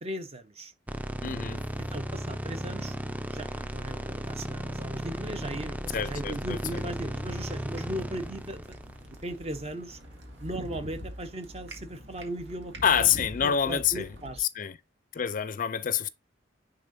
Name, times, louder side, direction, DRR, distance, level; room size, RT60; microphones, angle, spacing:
voice 1, 0.0-0.7 1.8-8.6 9.2-10.0 10.4-13.1 13.4-14.4, right 1 dB, 35° right, 0.9 m, -38 dB
sound 1, 0.9-10.1, right 1 dB, 10° right, 0.5 m, -36 dB
voice 2, 1.2-1.6 5.9-6.8 12.8-14.1 14.4-14.8 15.1-16.1, left 8 dB, 45° left, 0.4 m, -27 dB
sound 2, 6.7-14.4, equal, 75° right, 1.9 m, -44 dB
9.9 x 3.9 x 2.7 m
head